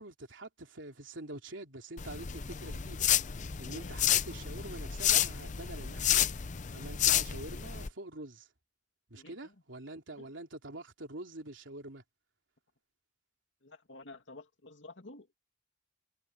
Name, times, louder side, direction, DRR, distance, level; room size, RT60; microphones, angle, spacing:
voice 1, 0.0-3.1 3.6-6.3 6.7-8.5 9.1-12.0, right 2 dB, 80° right, 3.2 m, -46 dB
sound 1, 2.0-7.9, left 10 dB, 40° left, 0.6 m, -30 dB
voice 2, 3.6-4.0 9.2-9.5 10.2-10.3 13.6-15.4, left 2 dB, 75° left, 2.4 m, -51 dB
head